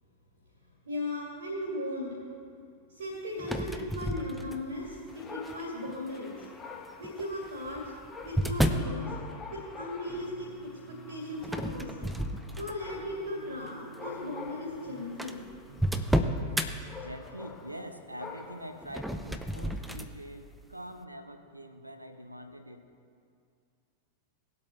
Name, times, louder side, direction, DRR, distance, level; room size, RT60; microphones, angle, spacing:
voice 1, 0.8-2.1 2.9-6.4 7.0-7.9 8.2-9.1 9.5-12.1 12.6-15.4, left 1 dB, 65° right, -4 dB, 2.4 m, -37 dB
sound 1, 3.4-4.8 5.5-5.9 7.0-9.0 11.4-13.0 13.5-13.7 14.5-14.6 14.7-14.8 15.2-16.7 18.8-20.1, equal, 5° right, 0.7 m, -31 dB
Dog, 5.1-18.8, left 4 dB, 20° left, 1.3 m, -48 dB
sound 2, 10.1-16.5, right 4 dB, 50° right, 1.0 m, -52 dB
voice 2, 17.0-22.8, equal, 85° right, 8 dB, 0.7 m, -44 dB
19.0 x 8.3 x 3.1 m, 2.3 s
figure-of-eight pair, 90°, 0 cm